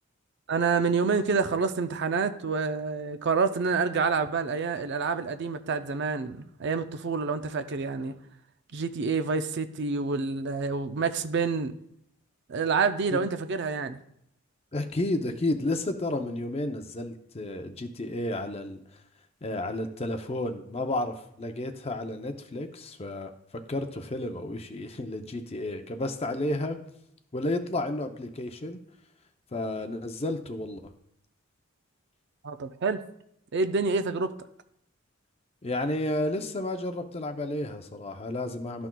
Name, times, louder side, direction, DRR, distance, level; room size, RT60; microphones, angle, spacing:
voice 1, 0.5-8.1 8.7-11.7 12.5-14.0 32.4-33.0 33.5-34.3, right 4 dB, 55° right, 9 dB, 0.5 m, -28 dB
voice 2, 14.7-18.8 19.4-23.3 23.7-26.8 27.3-28.8 29.5-30.8 35.6-38.9, left 1 dB, 30° left, 7 dB, 0.5 m, -31 dB
12.5 x 6.0 x 2.3 m, 0.74 s
head